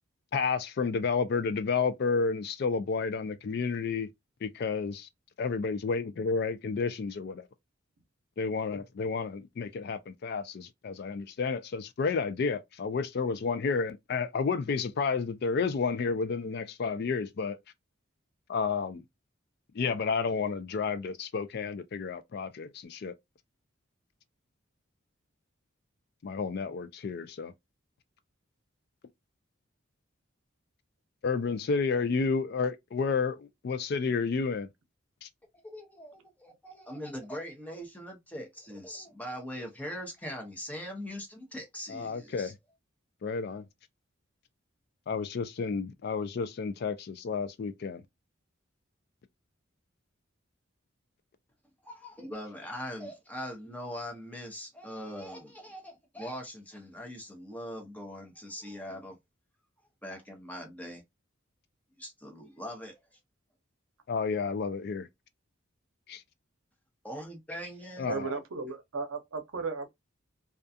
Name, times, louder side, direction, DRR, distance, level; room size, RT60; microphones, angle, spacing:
voice 1, 0.3-4.1 4.4-5.1 5.4-7.4 8.4-17.6 18.5-19.0 19.7-23.1 26.2-27.5 31.2-34.7 35.2-35.3 41.9-42.5 43.2-43.6 45.1-48.0 64.1-65.1 66.1-66.2 68.0-68.3, left 5 dB, 50° left, 0.3 m, -31 dB
voice 2, 35.6-42.5 51.8-59.2 60.0-61.0 61.9-63.0 67.0-68.1, equal, 10° left, 0.7 m, -41 dB
voice 3, 68.0-69.9, right 4 dB, 85° right, 0.6 m, -35 dB
2.4 x 2.3 x 2.6 m
head